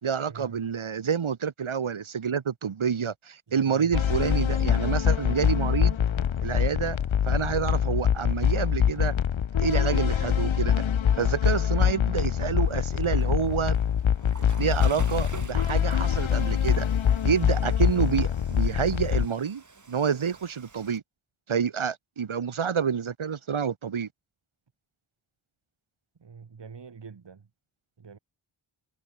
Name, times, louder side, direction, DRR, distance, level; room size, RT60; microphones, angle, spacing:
voice 1, 0.0-5.9 6.4-7.0 7.3-9.1 9.6-10.8 11.1-13.8 14.6-16.9 17.2-21.0 21.5-24.1, right 7 dB, 90° right, 2.1 m, -28 dB
voice 2, 3.6-3.9 26.2-27.4 28.0-28.2, right 5 dB, 60° right, 2.3 m, -44 dB
sound 1, 3.9-19.3, left 9 dB, 75° left, 1.0 m, -24 dB
Water / Toilet flush, 12.6-21.0, right 4 dB, 40° right, 2.7 m, -49 dB
wide cardioid pair, 100°, 47 cm